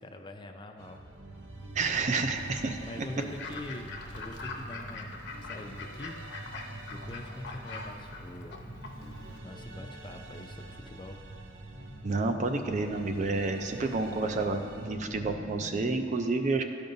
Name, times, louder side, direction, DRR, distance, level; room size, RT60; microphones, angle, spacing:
voice 1, 0.0-1.0 2.9-3.9 4.1-6.2 6.9-8.6 9.0-11.2, left 1 dB, 25° left, 5 dB, 0.4 m, -44 dB
sound 1, 0.8-14.9, right 2 dB, 80° right, 0.6 m, -50 dB
sound 2, 0.9-15.9, right 1 dB, 5° right, 0.9 m, -46 dB
voice 2, 1.7-2.8 12.0-16.6, right 3 dB, 40° right, 6 dB, 0.4 m, -29 dB
Fowl / Bird, 3.2-9.4, left 3 dB, 65° left, 0.7 m, -43 dB
12.5 x 5.2 x 2.6 m, 2.6 s
head